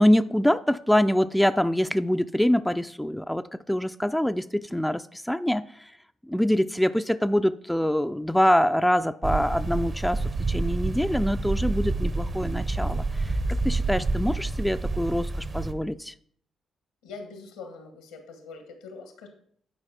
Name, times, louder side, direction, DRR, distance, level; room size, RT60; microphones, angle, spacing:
voice 1, 0.0-5.9 6.2-13.4 13.6-16.1, equal, 5° left, 10 dB, 0.4 m, -24 dB
sound 1, 9.2-15.7, right 3 dB, 40° right, 0.9 m, -28 dB
voice 2, 17.0-19.3, left 4 dB, 85° left, 6 dB, 1.4 m, -43 dB
9.9 x 4.8 x 4.3 m, 0.62 s
hypercardioid pair, 45°, 0 cm